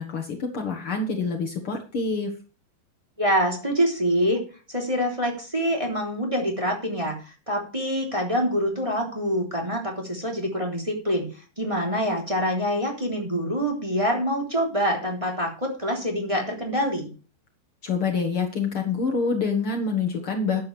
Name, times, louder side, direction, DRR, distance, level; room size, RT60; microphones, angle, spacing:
voice 1, 0.0-2.3 17.8-20.6, left 4 dB, 90° left, 3 dB, 1.2 m, -26 dB
voice 2, 3.2-4.4 4.7-11.3 11.6-17.1, equal, 10° right, -1 dB, 2.8 m, -25 dB
13.5 x 9.9 x 3.4 m, 0.36 s
omnidirectional pair, 5.0 m